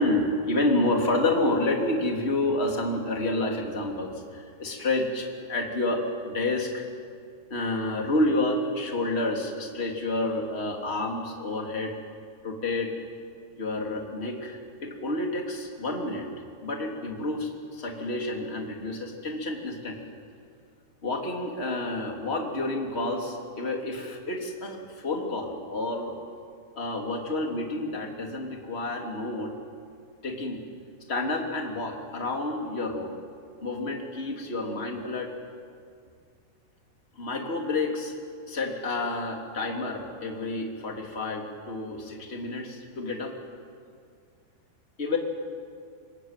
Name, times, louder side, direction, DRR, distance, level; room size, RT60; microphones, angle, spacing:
voice 1, 0.0-6.8 7.5-11.9 12.4-12.9 13.6-16.3 16.6-20.1 21.0-26.2 26.8-29.5 30.2-30.6 31.1-33.2 33.6-35.3 37.1-38.1 38.5-43.3 45.0-45.2, left 2 dB, 20° left, 1 dB, 2.3 m, -29 dB
25.5 x 22.5 x 9.1 m, 2.2 s
omnidirectional pair, 5.3 m